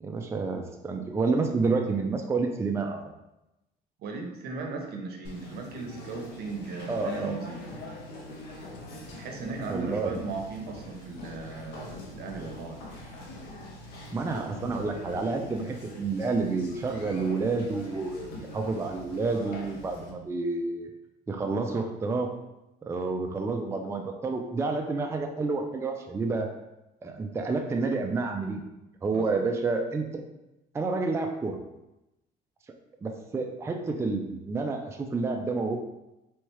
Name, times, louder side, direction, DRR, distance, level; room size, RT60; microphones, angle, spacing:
voice 1, 0.0-3.0 6.9-7.4 9.7-10.1 14.1-20.9 21.3-22.3 22.8-26.5 27.0-28.6 29.0-30.2 30.7-31.6 33.0-35.8, right 3 dB, 15° right, 2 dB, 0.4 m, -29 dB
voice 2, 4.0-7.6 9.2-12.8 29.1-29.4, right 4 dB, 70° right, 3 dB, 0.7 m, -37 dB
Conversation, 5.2-20.1, left 1 dB, 80° left, 0.8 m, -43 dB
3.5 x 3.1 x 3.1 m, 0.94 s
cardioid pair, 110°, 17 cm